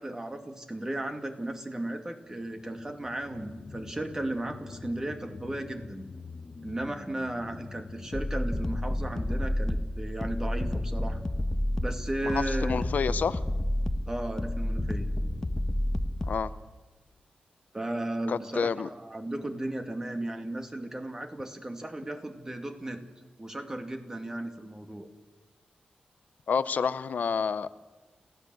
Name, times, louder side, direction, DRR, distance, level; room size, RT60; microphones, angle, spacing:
voice 1, 0.0-6.1 6.6-11.2 11.8-12.8 14.1-15.1 17.7-23.0 23.4-25.1, right 1 dB, 20° right, 5 dB, 2.4 m, -35 dB
sound 1, 2.3-11.3 11.8-11.9, left 4 dB, 40° left, 1.1 m, -47 dB
sound 2, 8.1-16.5, left 1 dB, 20° left, 1.1 m, -30 dB
voice 2, 12.2-13.4 16.3-16.5 18.3-18.9 26.5-27.9, left 6 dB, 70° left, 14 dB, 0.7 m, -29 dB
30.0 x 16.0 x 7.8 m, 1.2 s
wide cardioid pair, 135°, 3 cm